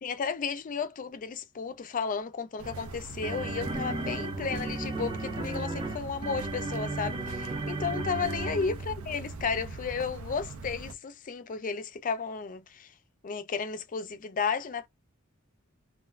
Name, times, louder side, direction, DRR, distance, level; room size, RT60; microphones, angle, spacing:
voice 1, 0.0-12.9 13.2-14.9, left 5 dB, 40° left, 0.4 m, -33 dB
sound 1, 2.6-9.1, right 2 dB, 25° right, 0.5 m, -35 dB
sound 2, 2.6-10.9, right 3 dB, 90° right, 0.5 m, -41 dB
3.1 x 2.3 x 2.4 m
head